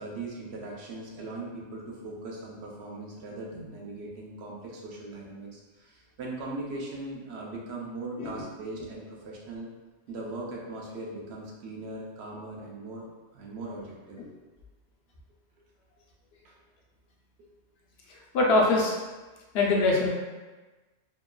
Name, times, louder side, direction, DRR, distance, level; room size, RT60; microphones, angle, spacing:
voice 1, 0.0-9.7 10.1-13.1 13.3-14.2 16.4-16.5 17.4-17.5, right 2 dB, 70° right, -2 dB, 0.8 m, -39 dB
voice 2, 18.3-18.9 19.5-20.1, left 2 dB, 65° left, -2 dB, 0.7 m, -22 dB
2.8 x 2.3 x 2.2 m, 1.2 s
omnidirectional pair, 1.3 m